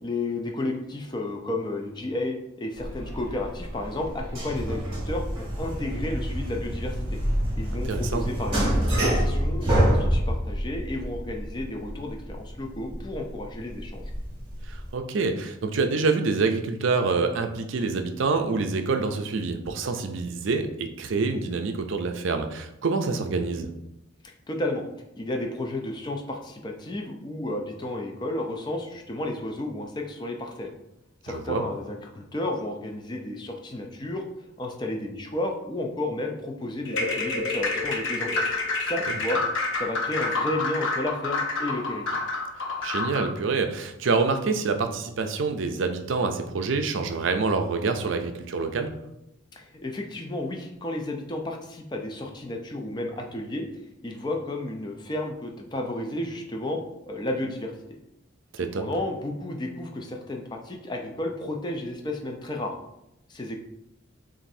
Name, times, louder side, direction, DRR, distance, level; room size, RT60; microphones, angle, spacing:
voice 1, 0.0-7.2 7.6-14.0 24.5-24.8 25.2-30.7 31.2-34.2 34.6-38.3 38.8-39.4 39.8-42.2 49.5-56.8 57.1-58.0 58.6-62.7 63.3-63.6, left 1 dB, 20° left, 2 dB, 0.4 m, -32 dB
sound 1, 2.7-14.9, equal, 25° right, 1.5 m, -27 dB
voice 2, 7.9-8.3 14.7-23.7 31.3-31.6 39.1-39.2 42.8-49.0 58.5-58.8, right 4 dB, 65° right, 6 dB, 0.5 m, -26 dB
sound 2, 36.9-43.3, left 3 dB, 65° left, 0.7 m, -28 dB
7.1 x 2.6 x 2.7 m, 0.86 s
head